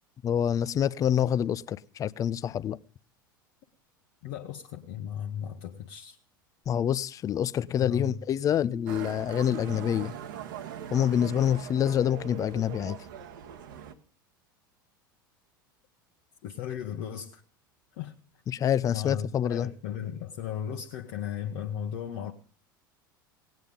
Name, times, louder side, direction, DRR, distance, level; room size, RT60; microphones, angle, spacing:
voice 1, 0.2-2.8 6.7-10.1 10.9-13.0 18.5-19.7, left 9 dB, 30° left, 0.5 m, -26 dB
voice 2, 4.2-6.2 7.8-8.2 16.4-17.4 17.9-18.2 18.9-22.3, left 9 dB, 55° left, 1.2 m, -36 dB
Motorcycle, 8.9-13.9, right 9 dB, 65° right, 1.3 m, -41 dB
18.0 x 9.1 x 5.3 m
figure-of-eight pair, 80°, 11 cm